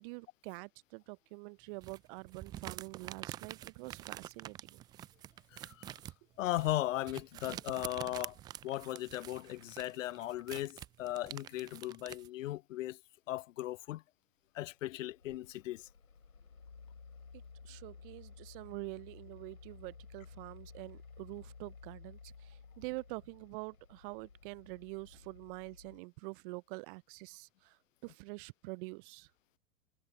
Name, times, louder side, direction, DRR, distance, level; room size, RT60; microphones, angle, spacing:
voice 1, 0.0-4.8 17.6-29.3, right 29 dB, 40° right, 0.7 m, -46 dB
sound 1, 1.8-12.3, right 13 dB, 10° right, 0.3 m, -47 dB
voice 2, 6.4-8.4 8.6-13.0 13.3-14.0 14.5-15.8, left 15 dB, 60° left, 0.7 m, -37 dB
Mechanical fan, 14.7-26.0, left 5 dB, 85° left, 6.1 m, -55 dB
figure-of-eight pair, 100°, 42 cm